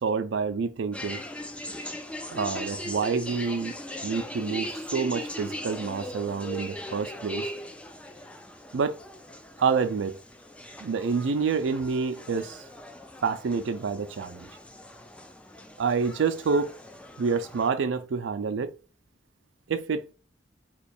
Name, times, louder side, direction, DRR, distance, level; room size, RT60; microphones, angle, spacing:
voice 1, 0.0-1.2 2.3-3.8 4.0-7.5 8.7-9.0 9.6-10.2 10.8-12.6 13.2-14.5 15.8-16.7 17.2-18.7 19.7-20.0, right 5 dB, 80° right, 0.4 m, -28 dB
sound 1, 0.9-17.7, equal, 5° left, 0.3 m, -39 dB
3.0 x 2.3 x 4.2 m
head